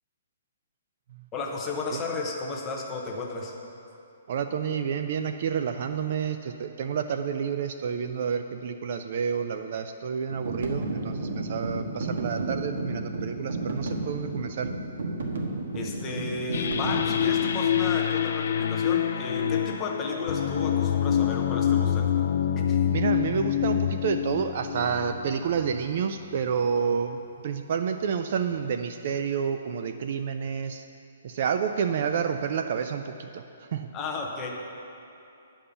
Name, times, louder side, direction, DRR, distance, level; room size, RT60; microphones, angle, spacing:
voice 1, 1.3-3.5 15.7-22.1 22.6-22.8 33.9-34.5, left 3 dB, 10° left, -1 dB, 0.7 m, -33 dB
voice 2, 4.3-14.7 22.9-30.8 31.2-33.9, right 7 dB, 40° right, 8 dB, 0.3 m, -29 dB
sound 1, 10.3-17.6, right 2 dB, 70° right, 1.3 m, -32 dB
sound 2, 16.5-25.9, left 9 dB, 50° left, 0.4 m, -26 dB
10.0 x 5.3 x 6.9 m, 2.7 s
hypercardioid pair, 175°, 0 cm